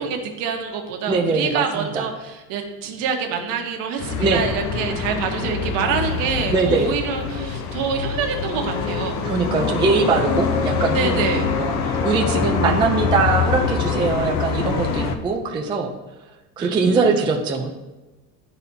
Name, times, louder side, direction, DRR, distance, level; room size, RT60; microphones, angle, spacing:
voice 1, 0.0-9.2 10.9-11.5 16.6-17.1, right 6 dB, 60° right, 3 dB, 1.2 m, -26 dB
voice 2, 1.1-2.1 4.2-4.4 6.5-7.0 9.2-11.2 11.6-11.7 12.0-15.9 16.6-17.7, right 4 dB, 15° right, 1 dB, 0.3 m, -21 dB
sound 1, 4.0-15.1, left 5 dB, 45° left, 0.6 m, -24 dB
12.0 x 4.1 x 2.7 m, 1.1 s
cardioid pair, 165°, 37 cm